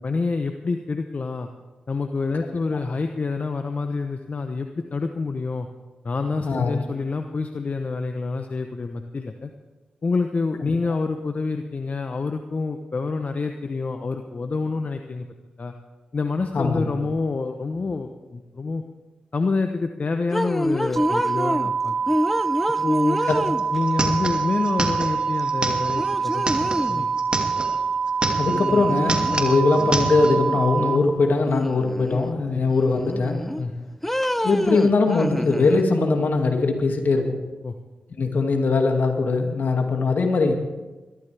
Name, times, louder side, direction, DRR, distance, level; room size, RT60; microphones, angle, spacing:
voice 1, 0.0-1.5 1.9-5.7 6.0-9.5 10.0-15.3 15.6-15.7 16.1-18.8 19.3-21.9 22.8-23.2 23.7-27.1 32.5-32.7 33.6-33.9 37.6-37.7, left 3 dB, 50° left, 6 dB, 1.0 m, -27 dB
voice 2, 6.4-6.8 16.5-16.9 23.3-23.4 28.4-33.4 34.4-37.4 38.2-40.5, left 3 dB, 70° left, 3 dB, 2.3 m, -21 dB
sound 1, 20.3-21.7 22.1-24.0 25.4-25.5 26.0-27.1 28.4-29.4 29.7-31.0 31.5-32.3 32.7-33.6 34.0-35.8, left 1 dB, 5° left, 0.6 m, -27 dB
sound 2, 21.0-31.0, right 5 dB, 55° right, 1.3 m, -25 dB
sound 3, 23.3-23.4 23.6-27.8 28.1-28.7 29.0-30.4, right 2 dB, 30° right, 2.4 m, -28 dB
21.0 x 14.0 x 3.5 m, 1.2 s
supercardioid pair, 40°, 3 cm